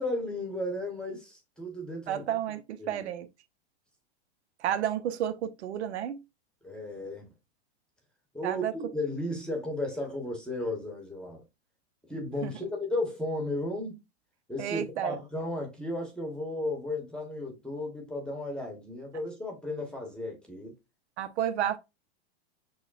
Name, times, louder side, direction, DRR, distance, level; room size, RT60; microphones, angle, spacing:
voice 1, 0.0-2.2 2.8-3.1 6.6-7.3 8.3-11.4 12.1-14.0 14.5-20.8, left 1 dB, 5° left, 0.9 m, -34 dB
voice 2, 2.1-3.3 4.6-6.2 8.4-8.7 12.4-12.5 14.6-15.1 21.2-21.8, right 10 dB, 80° right, 0.6 m, -31 dB
6.3 x 2.2 x 2.3 m
hypercardioid pair, 125°, 33 cm